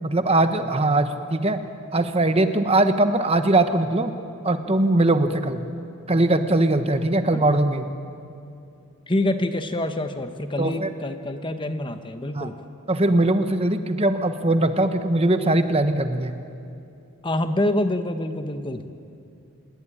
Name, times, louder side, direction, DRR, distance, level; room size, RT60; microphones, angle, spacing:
voice 1, 0.0-1.6 1.9-4.1 4.4-5.7 6.1-7.9 10.6-10.9 12.3-12.5 12.9-16.4, right 2 dB, 25° right, 8 dB, 1.2 m, -21 dB
voice 2, 9.1-12.6 17.2-18.8, left 1 dB, 20° left, 8 dB, 1.1 m, -26 dB
27.0 x 20.5 x 10.0 m, 2.6 s
head